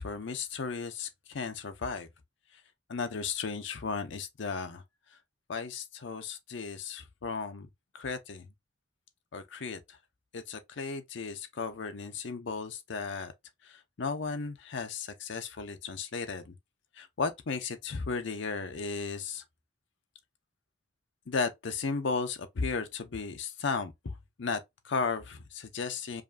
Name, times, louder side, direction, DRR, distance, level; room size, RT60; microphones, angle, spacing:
voice 1, 0.0-2.1 2.9-4.8 5.5-7.7 7.9-8.5 9.3-10.0 10.3-13.3 13.6-16.6 17.0-19.4 21.3-26.2, left 4 dB, 70° left, 0.6 m, -35 dB
5.0 x 2.5 x 2.4 m
head